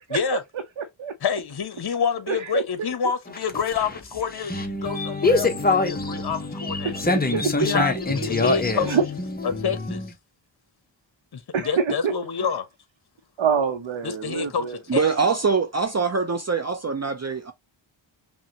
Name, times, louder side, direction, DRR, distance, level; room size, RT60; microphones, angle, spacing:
voice 1, 0.1-0.4 1.2-7.0 7.6-8.9 9.4-10.0 11.3-12.6 14.0-15.0, left 6 dB, 50° left, 0.8 m, -28 dB
voice 2, 0.8-1.1 2.3-2.6 6.8-7.7 8.2-8.3 8.9-9.0 11.5-12.1 13.4-14.8, right 6 dB, 70° right, 0.8 m, -25 dB
sound 1, 3.3-10.1, left 3 dB, 20° left, 0.7 m, -25 dB
voice 3, 14.9-17.5, right 5 dB, 35° right, 0.6 m, -23 dB
5.6 x 2.2 x 2.8 m
cardioid pair, 60°, 48 cm